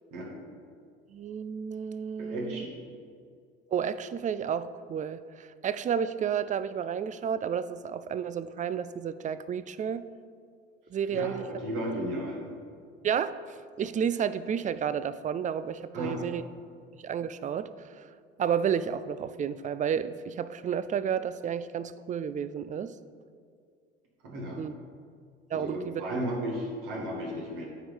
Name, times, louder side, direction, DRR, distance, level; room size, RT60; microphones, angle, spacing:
voice 1, 1.1-2.6 3.7-10.1 10.9-11.4 13.0-13.4 13.8-16.4 17.0-17.7 18.0-18.1 18.4-22.9 24.6-24.7 25.5-26.0, right 8 dB, 25° right, 14 dB, 0.4 m, -31 dB
voice 2, 2.2-2.8 11.1-12.5 15.9-16.2 24.2-24.6 25.5-27.7, right 1 dB, 70° right, -2 dB, 2.2 m, -34 dB
9.4 x 4.5 x 5.4 m, 2.2 s
hypercardioid pair, 70°, 32 cm